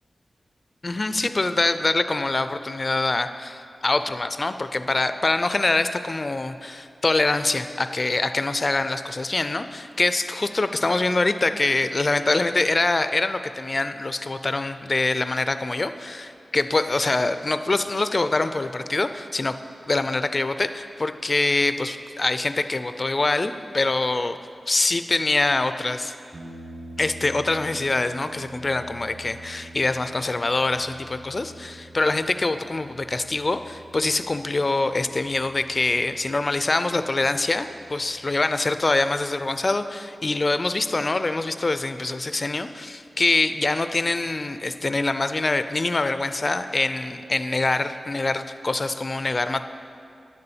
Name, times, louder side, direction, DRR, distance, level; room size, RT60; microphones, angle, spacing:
voice 1, 0.8-19.5 19.9-24.4 24.7-26.1 27.0-49.6, left 2 dB, 35° left, 10 dB, 0.4 m, -24 dB
sound 1, 26.3-39.4, right 1 dB, 40° right, 1.0 m, -46 dB
9.9 x 6.8 x 7.2 m, 2.5 s
wide cardioid pair, 110°, 0 cm